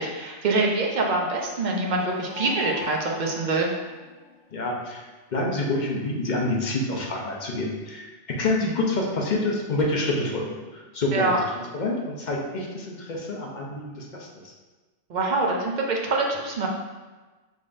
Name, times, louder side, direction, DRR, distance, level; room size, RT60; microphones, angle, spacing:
voice 1, 0.0-3.7 11.1-11.4 15.1-16.7, right 3 dB, 50° right, 0 dB, 0.6 m, -25 dB
sound 1, 1.5-4.4, left 5 dB, 75° left, 0.9 m, -41 dB
voice 2, 4.5-11.4 11.7-14.5, left 2 dB, 45° left, -1 dB, 0.7 m, -27 dB
5.1 x 3.6 x 2.6 m, 1.3 s
omnidirectional pair, 1.2 m